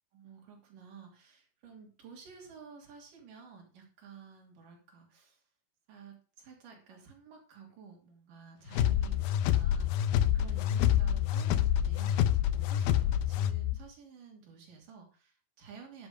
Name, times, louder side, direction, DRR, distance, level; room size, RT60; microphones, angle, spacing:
voice 1, 0.1-5.4 5.9-16.1, right 6 dB, 60° right, 1 dB, 4.4 m, -52 dB
sound 1, 8.7-13.8, left 11 dB, 80° left, 2.5 m, -27 dB
11.0 x 7.0 x 5.4 m, 0.38 s
omnidirectional pair, 4.6 m